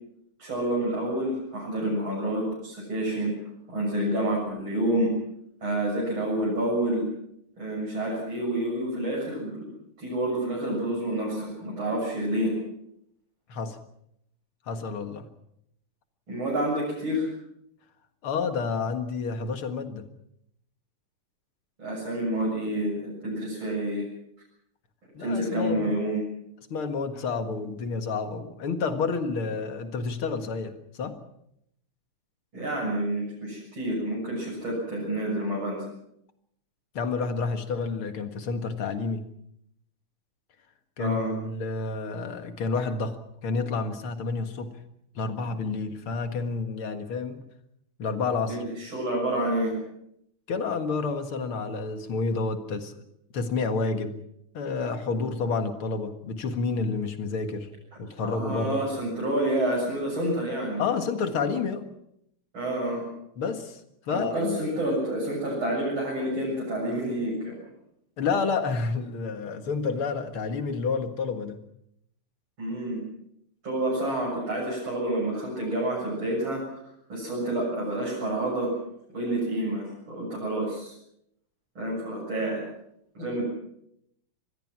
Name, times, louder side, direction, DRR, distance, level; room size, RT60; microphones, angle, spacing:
voice 1, 0.4-3.3 3.7-5.1 5.6-7.0 7.6-9.7 10.0-12.5 16.3-17.3 21.8-24.1 25.2-26.2 32.5-35.9 41.0-41.3 48.5-49.8 58.2-60.8 62.5-63.1 64.1-67.5 72.6-73.0 73.6-76.6 77.1-78.7 79.1-80.9 81.7-82.6 83.1-83.4, right 1 dB, 65° right, -5 dB, 8.2 m, -28 dB
voice 2, 14.7-15.3 18.2-20.1 25.1-25.9 26.7-31.2 36.9-39.3 41.0-43.2 43.4-44.8 45.2-47.4 48.0-48.6 50.5-53.0 53.3-54.2 54.5-57.7 58.0-58.9 60.8-61.9 63.4-63.8 64.1-64.7 68.2-71.6, left 4 dB, 75° left, 8 dB, 2.6 m, -29 dB
26.0 x 20.5 x 6.1 m, 0.76 s
omnidirectional pair, 2.4 m